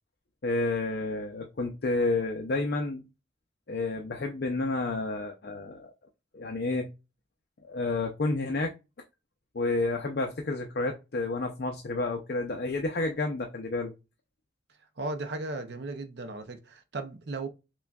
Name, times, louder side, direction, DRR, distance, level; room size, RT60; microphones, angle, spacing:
voice 1, 0.4-3.0 3.7-5.9 6.3-6.9 7.7-8.7 9.5-13.9, left 2 dB, 60° left, 0.5 m, -30 dB
voice 2, 15.0-17.5, right 2 dB, 65° right, 0.5 m, -36 dB
6.0 x 2.2 x 2.3 m
head